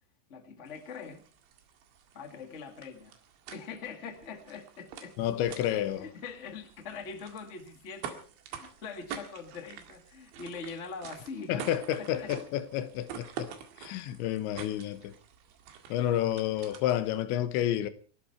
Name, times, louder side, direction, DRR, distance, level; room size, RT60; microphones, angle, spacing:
voice 1, 0.3-1.3 2.1-3.2 3.5-5.2 6.0-8.2 8.5-11.7 12.0-12.3, left 5 dB, 50° left, 0.8 m, -43 dB
sound 1, 0.7-17.2, right 8 dB, 85° right, 4.3 m, -47 dB
voice 2, 5.2-6.1 11.5-13.5 13.8-15.1 15.9-17.9, left 12 dB, 90° left, 3.4 m, -30 dB
27.0 x 11.5 x 4.4 m
omnidirectional pair, 5.1 m